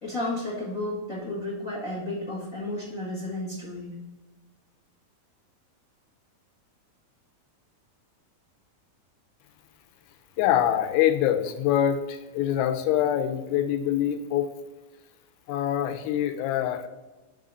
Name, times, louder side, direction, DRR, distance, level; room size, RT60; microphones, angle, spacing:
voice 1, 0.0-3.9, left 1 dB, 45° left, -6 dB, 1.0 m, -32 dB
voice 2, 10.4-14.5 15.5-16.9, left 11 dB, 85° left, 7 dB, 2.4 m, -24 dB
5.5 x 3.7 x 5.3 m, 1.1 s
omnidirectional pair, 4.3 m